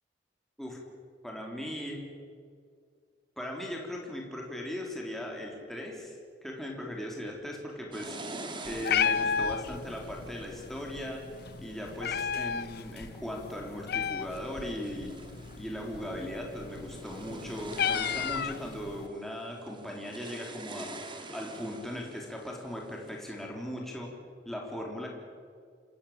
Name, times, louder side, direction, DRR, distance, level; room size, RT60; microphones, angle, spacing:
voice 1, 1.2-2.0 3.4-8.2 8.6-11.2 11.6-15.2 15.6-21.0 21.3-24.1 24.5-25.1, equal, ahead, -1 dB, 3.7 m, -38 dB
sound 1, 7.9-12.6 13.2-13.8 14.2-23.4, right 2 dB, 25° right, 2.7 m, -46 dB
Meow, 8.6-19.1, left 7 dB, 60° left, 0.7 m, -34 dB
28.0 x 16.5 x 8.8 m, 2.1 s
head